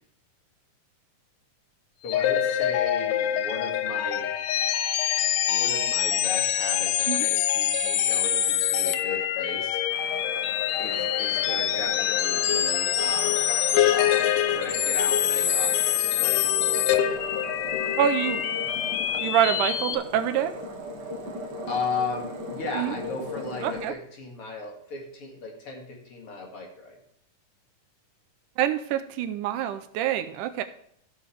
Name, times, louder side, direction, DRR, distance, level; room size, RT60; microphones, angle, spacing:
voice 1, 2.0-4.3 5.5-9.8 10.8-15.8 16.2-17.2 21.7-27.0, left 3 dB, 45° left, 0 dB, 2.8 m, -36 dB
sound 1, 2.1-19.9, left 10 dB, 85° left, 2.2 m, -25 dB
sound 2, 9.9-23.9, left 1 dB, 50° right, 1.4 m, -38 dB
voice 2, 18.0-18.4 19.2-20.5 22.7-22.9 23.6-23.9 28.6-30.6, right 10 dB, 80° right, 10 dB, 2.1 m, -26 dB
16.0 x 6.4 x 3.3 m, 0.69 s
omnidirectional pair, 3.7 m